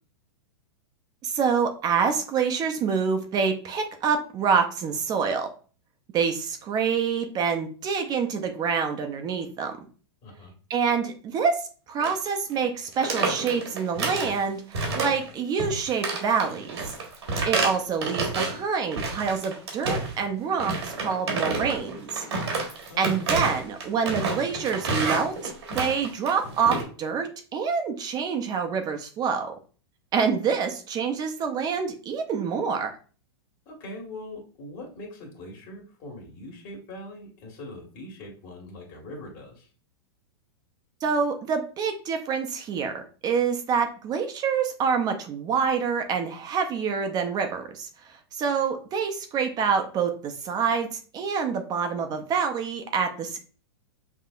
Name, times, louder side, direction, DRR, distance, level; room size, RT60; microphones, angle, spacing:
voice 1, 1.2-5.5 6.1-9.7 10.7-11.6 11.9-16.8 17.5-22.2 23.0-29.5 30.1-32.9 41.0-47.9 48.3-53.4, right 6 dB, 30° right, 5 dB, 0.6 m, -26 dB
voice 2, 10.2-10.5 22.9-23.3 33.6-39.7, left 1 dB, 45° left, 0 dB, 1.6 m, -42 dB
sound 1, 12.0-12.3 12.5-12.7 12.9-14.4 14.7-15.3 15.6-18.6 18.9-20.2 20.6-26.8, right 3 dB, 80° right, 1.5 m, -29 dB
5.6 x 2.7 x 2.5 m, 0.38 s
hypercardioid pair, 115°, 14 cm